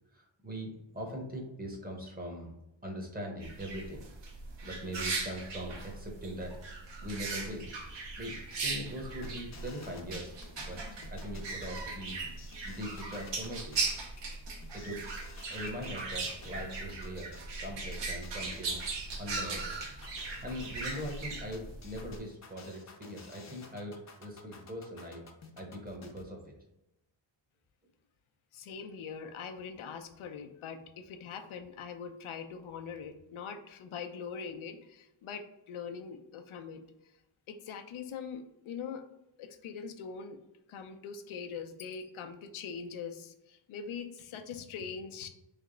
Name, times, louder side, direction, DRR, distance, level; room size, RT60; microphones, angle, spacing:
voice 1, 0.1-2.6 2.8-4.1 4.6-6.5 7.0-7.7 8.2-12.2 12.6-13.8 14.7-15.1 15.5-17.3 17.6-18.8 19.2-19.7 20.4-25.3 25.6-26.5, equal, 20° right, 1 dB, 0.8 m, -41 dB
sound 1, 3.4-22.2, right 3 dB, 65° right, 0.8 m, -39 dB
sound 2, 9.2-26.2, left 4 dB, 35° left, 0.6 m, -53 dB
voice 2, 28.5-36.8 37.5-39.0 39.4-40.4 40.7-45.3, left 6 dB, 90° left, 6 dB, 0.6 m, -42 dB
3.3 x 3.0 x 3.8 m, 0.91 s
wide cardioid pair, 145°, 47 cm